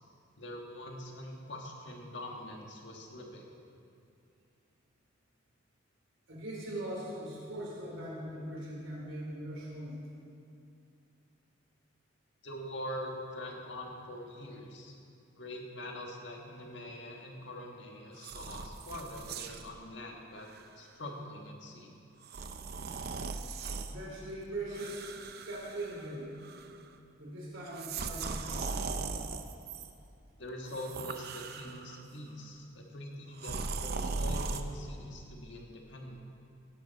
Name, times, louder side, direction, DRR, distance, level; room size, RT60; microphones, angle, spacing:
voice 1, 0.4-3.5 12.4-14.9 15.4-20.5 20.7-22.0 30.4-36.2, left 1 dB, 60° left, 1 dB, 1.7 m, -43 dB
voice 2, 6.3-10.0 23.9-25.0 25.5-26.3 27.2-28.8, right 1 dB, 75° right, -3 dB, 3.7 m, -40 dB
sound 1, 18.2-19.7 20.4-20.6 22.2-23.9 24.7-26.2 26.4-26.9 27.7-29.9 30.6-32.0 33.4-34.6, right 4 dB, 50° right, 0.6 m, -38 dB
17.0 x 11.5 x 4.1 m, 2.6 s
head